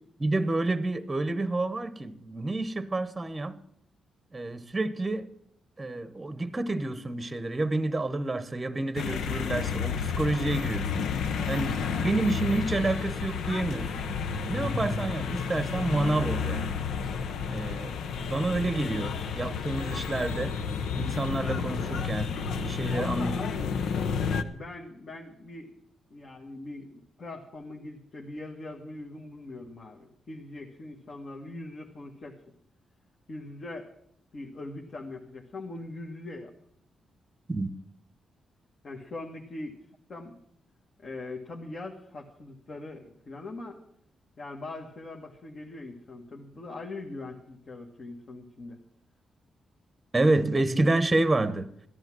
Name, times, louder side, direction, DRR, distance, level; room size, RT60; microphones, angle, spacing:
voice 1, 0.2-3.6 4.3-5.3 5.8-11.1 11.5-14.1 14.5-16.8 17.5-20.6 21.0-23.3 37.5-37.7 50.1-51.7, right 2 dB, 20° right, 0.9 m, -29 dB
sound 1, 9.0-24.4, left 6 dB, 85° left, 0.9 m, -31 dB
voice 2, 22.9-23.7 24.5-25.7 26.1-32.4 33.3-33.9 34.3-36.5 38.8-39.8 40.1-40.4 41.0-43.8 44.4-48.8, left 2 dB, 45° left, 1.6 m, -41 dB
14.0 x 11.0 x 6.1 m
cardioid pair, 110°, 0 cm